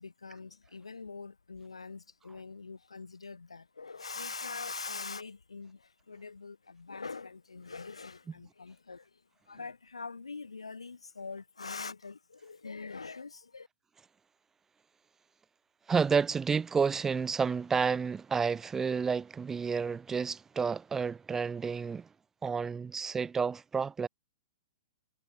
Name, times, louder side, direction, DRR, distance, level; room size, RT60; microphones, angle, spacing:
voice 1, 0.0-13.7, left 4 dB, 80° left, 2.0 m, -43 dB
voice 2, 15.9-22.1 22.4-24.1, right 5 dB, 15° right, 0.8 m, -30 dB
figure-of-eight pair, 110°, 3 cm